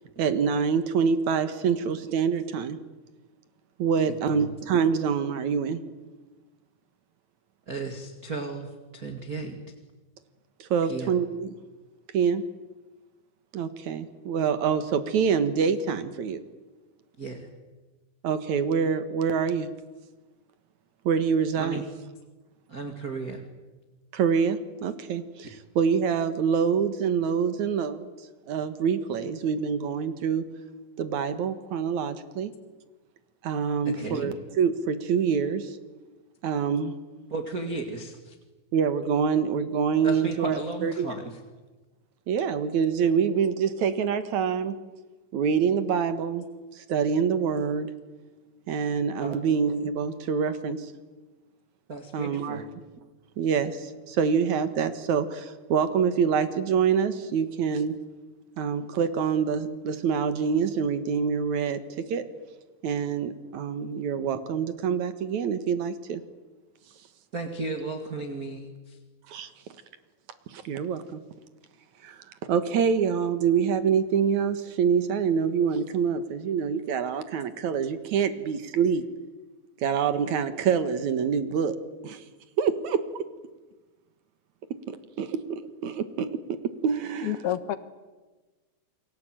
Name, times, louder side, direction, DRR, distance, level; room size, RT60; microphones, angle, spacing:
voice 1, 0.2-2.8 3.8-5.8 10.6-11.5 12.1-12.4 13.5-16.4 18.2-19.7 21.1-21.8 24.1-28.1 28.5-30.4 31.0-32.5 33.4-35.8 36.4-36.9 38.7-41.1 42.3-44.8 45.3-46.4 46.8-47.9 48.7-50.9 52.1-52.6 53.4-57.9 58.6-61.8 62.1-62.2 62.8-66.2 69.3-69.5 70.5-71.2 72.0-72.2 72.5-79.0 79.8-81.8 82.0-82.2 82.6-83.0 84.9-86.3 86.8-87.4, right 6 dB, 60° right, 11 dB, 2.5 m, -26 dB
voice 2, 4.1-4.5 7.7-9.6 10.8-11.1 17.2-17.5 21.6-21.8 22.7-23.4 33.8-34.3 37.3-38.4 40.0-41.4 49.2-49.4 51.9-52.7 67.3-69.0, right 3 dB, 30° right, 5 dB, 2.0 m, -35 dB
voice 3, 87.2-87.8, left 11 dB, 90° left, 12 dB, 3.3 m, -28 dB
29.0 x 22.0 x 9.0 m, 1.2 s
omnidirectional pair, 4.3 m